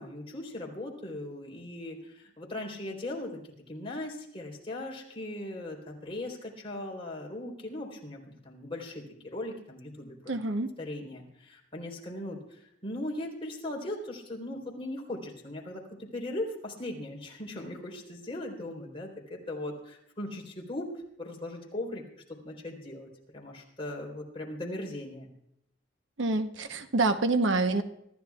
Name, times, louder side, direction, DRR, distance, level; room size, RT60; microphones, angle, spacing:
voice 1, 0.0-3.4 3.7-10.3 10.8-22.0 22.4-23.1 23.3-25.3, left 1 dB, 30° left, -2 dB, 3.6 m, -39 dB
voice 2, 10.3-10.7 26.2-27.8, right 3 dB, 85° right, 8 dB, 0.9 m, -26 dB
25.0 x 13.5 x 2.4 m, 0.76 s
head